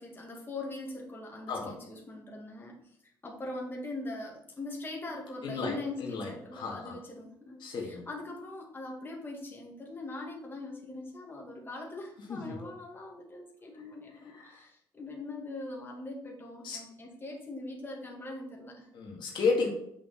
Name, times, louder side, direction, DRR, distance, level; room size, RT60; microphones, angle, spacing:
voice 1, 0.0-2.8 3.2-18.9, left 2 dB, 25° left, -1 dB, 2.1 m, -41 dB
voice 2, 5.4-5.7 6.0-6.9 7.6-8.0 12.3-12.6 14.3-14.6 16.6-16.8 18.9-19.7, left 4 dB, 65° left, 0 dB, 2.1 m, -32 dB
7.2 x 6.0 x 4.3 m, 0.73 s
cardioid pair, 85°, 9 cm